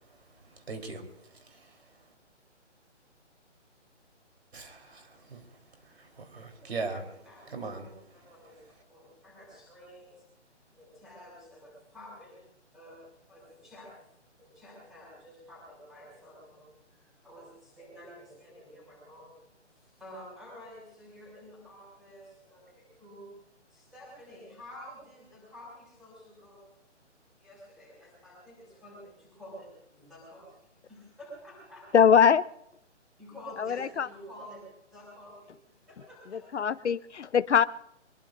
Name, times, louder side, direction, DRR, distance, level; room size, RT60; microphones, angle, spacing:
voice 1, 0.5-1.0 1.4-1.7 4.5-4.7 5.0-5.4 5.9-7.1 7.5-7.9, right 4 dB, 60° right, 4 dB, 3.9 m, -39 dB
voice 2, 6.6-8.6 8.9-10.2 10.7-12.4 12.7-13.0 13.3-13.9 14.4-16.7 17.0-19.3 19.7-23.3 23.7-26.7 27.4-31.8 33.2-34.6 34.9-35.5 35.9-36.7, equal, ahead, -6 dB, 6.2 m, -50 dB
voice 3, 31.9-32.4 33.6-34.1 36.3-37.6, left 7 dB, 70° left, 16 dB, 0.7 m, -22 dB
24.0 x 22.0 x 2.6 m, 0.76 s
hypercardioid pair, 175°, 36 cm